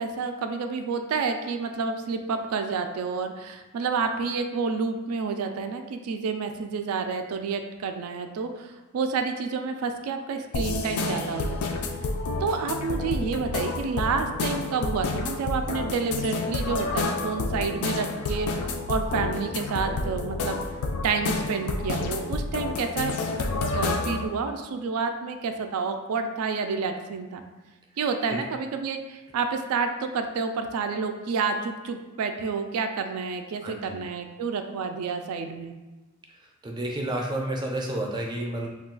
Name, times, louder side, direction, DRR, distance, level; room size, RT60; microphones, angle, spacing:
voice 1, 0.0-11.8 12.4-20.6 21.0-23.4 23.7-27.4 28.0-35.7, right 5 dB, 85° right, 6 dB, 0.3 m, -29 dB
sound 1, 10.5-24.3, left 3 dB, 85° left, 0.4 m, -29 dB
voice 2, 33.6-34.0 36.6-38.7, right 1 dB, 20° right, 0 dB, 0.4 m, -30 dB
2.3 x 2.3 x 3.7 m, 1.2 s
head